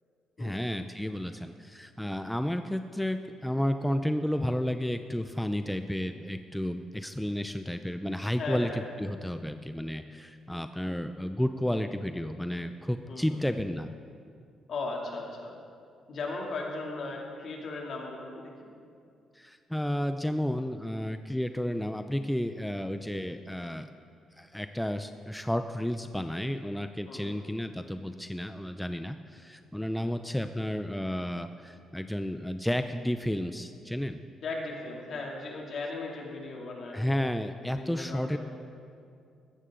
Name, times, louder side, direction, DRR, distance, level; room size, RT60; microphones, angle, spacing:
voice 1, 0.4-8.7 9.0-13.9 19.3-23.9 24.4-34.2 36.9-38.4, equal, 5° left, 8 dB, 0.5 m, -32 dB
voice 2, 8.4-8.8 13.1-13.4 14.7-15.6 16.1-18.7 27.1-27.4 34.4-37.0 37.7-38.4, left 3 dB, 60° left, -1 dB, 2.7 m, -37 dB
15.5 x 13.5 x 3.8 m, 2.4 s
cardioid pair, 90°, 0 cm